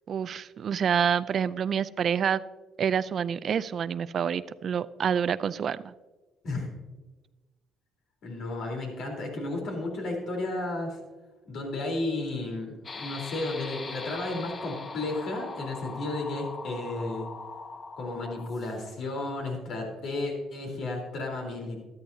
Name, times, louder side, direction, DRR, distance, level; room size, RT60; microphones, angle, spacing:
voice 1, 0.1-2.4 2.8-5.9, right 7 dB, 50° right, 16 dB, 0.4 m, -27 dB
voice 2, 8.2-11.0 11.5-17.3 18.0-21.8, left 2 dB, 65° left, 1 dB, 3.7 m, -33 dB
sound 1, 12.8-19.0, left 4 dB, 35° left, 0.7 m, -41 dB
13.0 x 13.0 x 2.8 m, 1.2 s
supercardioid pair, 85°, 0 cm